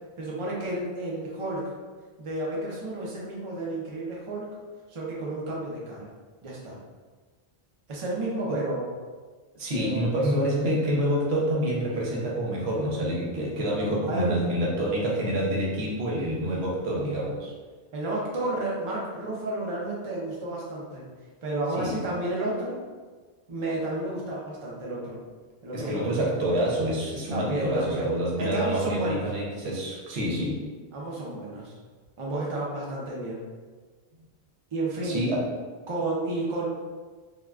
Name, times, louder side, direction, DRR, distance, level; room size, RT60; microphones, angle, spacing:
voice 1, 0.2-1.7 2.2-4.5 4.9-6.1 6.4-6.8 7.9-8.8 9.8-10.2 14.1-14.4 17.9-21.1 21.4-22.8 23.5-25.2 25.6-26.1 27.3-28.1 28.4-29.2 30.9-31.8 32.2-33.4 34.7-35.2 35.9-36.7, right 2 dB, 40° right, -4 dB, 0.5 m, -31 dB
voice 2, 9.5-17.5 21.8-21.9 25.7-30.6 35.0-35.5, right 1 dB, 80° right, -4 dB, 1.0 m, -27 dB
3.5 x 2.2 x 2.3 m, 1.4 s
omnidirectional pair, 1.0 m